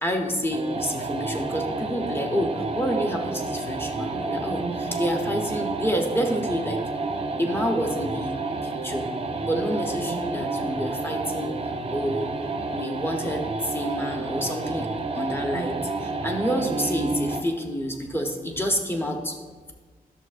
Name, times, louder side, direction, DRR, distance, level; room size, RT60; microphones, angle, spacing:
voice 1, 0.0-6.8 7.4-9.1 9.4-11.6 11.9-12.3 12.7-14.9 15.1-19.4, equal, 15° left, 3 dB, 0.7 m, -28 dB
sound 1, 0.5-17.5, right 3 dB, 40° right, 0.4 m, -30 dB
11.0 x 6.7 x 2.5 m, 1.4 s
wide cardioid pair, 175°, 16 cm